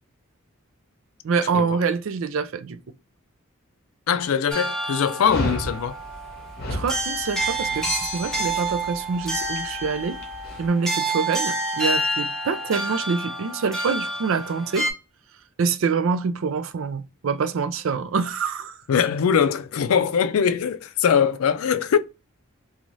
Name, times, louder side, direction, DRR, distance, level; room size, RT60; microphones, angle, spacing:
voice 1, 1.2-2.8 6.7-10.2 10.6-14.9 15.6-18.8, right 5 dB, 70° right, 0.4 m, -26 dB
voice 2, 4.1-6.0 18.9-22.0, left 7 dB, 90° left, 0.4 m, -22 dB
sound 1, 4.5-14.9, right 1 dB, 5° left, 0.7 m, -28 dB
Dog, 5.2-10.7, equal, 50° left, 0.8 m, -34 dB
2.5 x 2.4 x 3.0 m
head